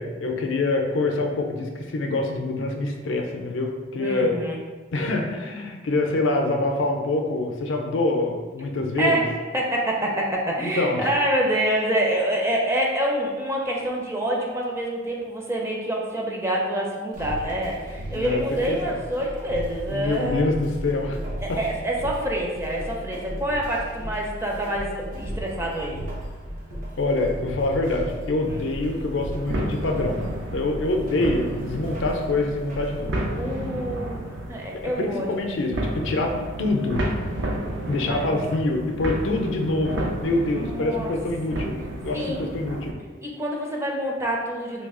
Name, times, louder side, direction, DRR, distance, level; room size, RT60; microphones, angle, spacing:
voice 1, 0.0-4.4 4.9-9.2 10.6-11.1 18.1-19.0 19.9-21.2 21.5-21.6 27.0-30.2 30.5-33.2 34.8-37.0 37.9-41.8 42.0-42.9, left 2 dB, 75° left, 2 dB, 0.5 m, -25 dB
voice 2, 4.0-4.6 9.0-20.5 21.4-26.0 28.4-28.6 33.4-35.3 38.1-38.4 40.5-41.1 41.5-41.6 42.1-42.4 43.2-44.9, right 1 dB, 15° right, -2 dB, 0.5 m, -27 dB
sound 1, 17.1-33.1, equal, 45° right, 0.8 m, -36 dB
sound 2, 28.4-42.9, right 1 dB, 65° right, 0.5 m, -32 dB
3.2 x 2.3 x 3.6 m, 1.4 s
head